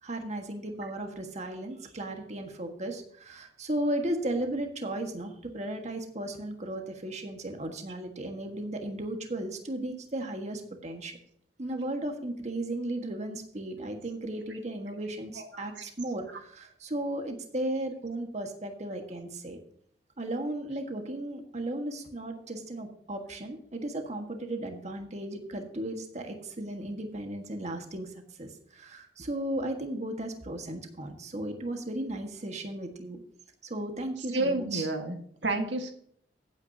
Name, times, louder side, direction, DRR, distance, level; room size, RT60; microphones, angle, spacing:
voice 1, 0.0-11.2 11.6-19.6 20.2-28.1 28.4-33.2 33.6-34.9, right 1 dB, 40° right, 4 dB, 1.5 m, -35 dB
voice 2, 34.3-35.2 35.4-35.9, right 2 dB, 90° right, 5 dB, 1.6 m, -29 dB
15.5 x 8.8 x 2.8 m, 0.65 s
head